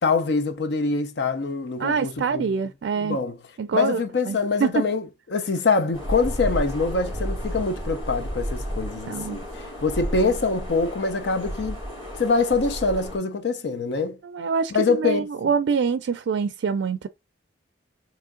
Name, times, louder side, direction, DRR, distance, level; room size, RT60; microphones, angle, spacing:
voice 1, 0.0-2.5 3.0-3.4 3.7-11.8 12.2-14.2 14.7-15.3, left 4 dB, 70° left, 0.5 m, -24 dB
voice 2, 1.8-3.2 3.6-4.0 4.3-4.8 9.1-9.4 14.2-17.1, right 5 dB, 80° right, 0.3 m, -25 dB
sound 1, 5.9-13.2, equal, 30° left, 2.3 m, -32 dB
3.6 x 3.0 x 3.6 m
head